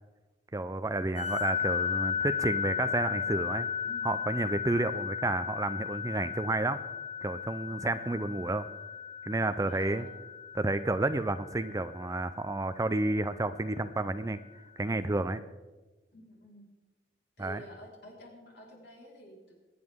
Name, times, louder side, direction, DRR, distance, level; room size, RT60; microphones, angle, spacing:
voice 1, 0.5-3.7 4.0-6.8 7.2-8.7 9.3-10.1 10.5-14.4 14.8-15.4 17.4-17.6, right 2 dB, 20° right, 12 dB, 0.4 m, -31 dB
sound 1, 1.2-13.4, left 7 dB, 35° left, 1.0 m, -35 dB
voice 2, 3.8-4.2 4.7-5.0 7.9-8.2 9.7-10.1 16.1-16.7 17.4-19.5, equal, 65° left, -3 dB, 4.3 m, -50 dB
22.5 x 9.5 x 3.6 m, 1.2 s
head